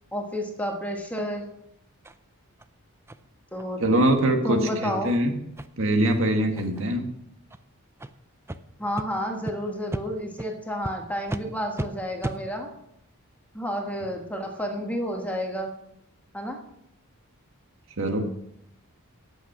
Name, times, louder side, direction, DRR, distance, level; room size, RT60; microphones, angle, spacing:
voice 1, 0.1-1.5 3.5-3.8 4.4-5.2 8.8-12.7 13.5-15.7 16.3-16.6, equal, 5° left, 2 dB, 1.5 m, -30 dB
sound 1, 2.0-2.2 2.6-2.7 3.1-3.2 3.6-3.7 4.1-4.2 4.6-4.7 5.0-5.2 5.6-5.7 6.1-6.2 6.5-6.9 7.5-7.6 8.0-8.1 8.5-8.6 9.0-9.1 9.5-9.6 9.9-10.0 10.4-10.5 10.8-10.9 11.3-11.4 11.8-11.9 12.2-12.4, right 1 dB, 10° right, 0.4 m, -34 dB
voice 2, 3.8-5.3 5.8-7.1 18.0-18.2, right 1 dB, 60° right, 4 dB, 1.6 m, -23 dB
11.0 x 8.4 x 6.0 m, 0.78 s
head